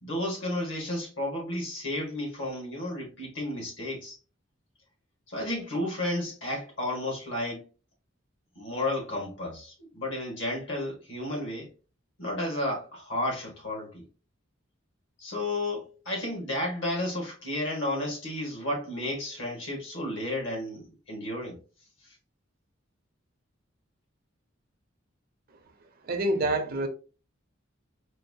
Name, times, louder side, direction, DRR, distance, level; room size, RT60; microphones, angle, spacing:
voice 1, 0.0-4.2 5.3-7.7 8.6-11.7 12.2-14.1 15.2-21.6, left 1 dB, 70° left, 1.6 m, -32 dB
voice 2, 26.0-26.9, right 1 dB, 50° right, 0.6 m, -27 dB
4.4 x 2.3 x 2.7 m
head